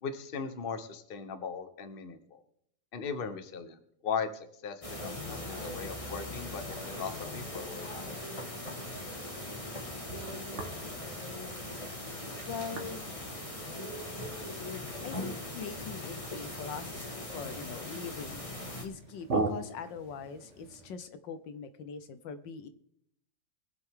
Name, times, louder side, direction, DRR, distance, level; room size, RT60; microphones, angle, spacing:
voice 1, 0.0-2.4 2.9-7.9, left 6 dB, 35° left, 9 dB, 1.1 m, -38 dB
sound 1, 4.8-18.9, left 1 dB, 20° left, 1.7 m, -40 dB
sound 2, 8.9-21.0, right 3 dB, 40° right, 1.7 m, -42 dB
voice 2, 12.5-13.1 15.0-18.4 18.8-22.7, left 6 dB, 75° left, 11 dB, 1.5 m, -42 dB
22.5 x 7.8 x 3.7 m, 0.69 s
omnidirectional pair, 2.0 m